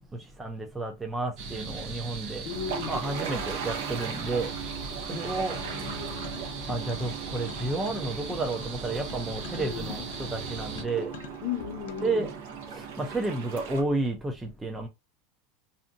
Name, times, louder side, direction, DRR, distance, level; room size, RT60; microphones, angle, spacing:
voice 1, 0.1-2.4 2.9-4.5 5.1-5.6 6.7-11.1 12.0-12.4 12.7-14.9, right 2 dB, 10° right, 0.4 m, -31 dB
sound 1, 1.4-10.8, right 3 dB, 45° right, 0.7 m, -39 dB
voice 2, 2.5-3.0 5.1-6.7 9.6-9.9 11.4-12.3, left 10 dB, 50° left, 0.7 m, -37 dB
sound 2, 2.5-13.8, right 7 dB, 80° right, 0.9 m, -38 dB
sound 3, 5.9-7.2 7.5-12.2, left 9 dB, 90° left, 0.5 m, -45 dB
2.7 x 2.6 x 2.5 m
supercardioid pair, 160°, 0 cm